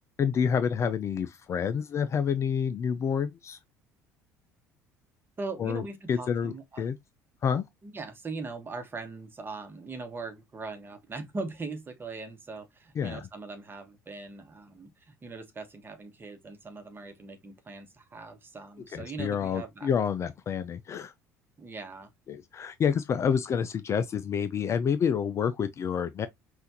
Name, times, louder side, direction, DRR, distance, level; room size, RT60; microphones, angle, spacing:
voice 1, 0.2-3.6 5.6-5.8 6.1-7.0 7.4-7.6 13.0-13.3 18.9-21.1 22.3-26.3, left 7 dB, 30° left, 0.4 m, -28 dB
voice 2, 5.4-6.9 7.8-19.9 21.6-22.1, right 3 dB, 25° right, 1.2 m, -40 dB
5.5 x 2.5 x 2.7 m
figure-of-eight pair, 60°, 9 cm